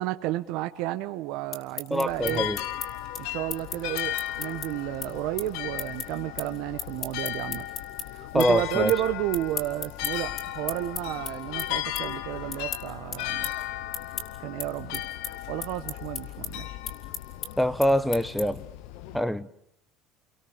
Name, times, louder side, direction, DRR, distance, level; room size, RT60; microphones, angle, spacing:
voice 1, 0.0-2.5 3.2-7.6 8.1-13.4 14.4-15.0 15.5-16.8, right 15 dB, 75° right, 1.2 m, -32 dB
sound 1, 1.3-8.1 8.4-9.0 9.3-18.7, left 6 dB, 50° left, 6.1 m, -36 dB
voice 2, 1.9-2.6 8.3-8.9 17.6-18.6 19.1-19.5, equal, ahead, 1.2 m, -24 dB
sound 2, 2.1-19.2, left 13 dB, 80° left, 1.1 m, -36 dB
30.0 x 23.0 x 6.9 m
cardioid pair, 120°, 0 cm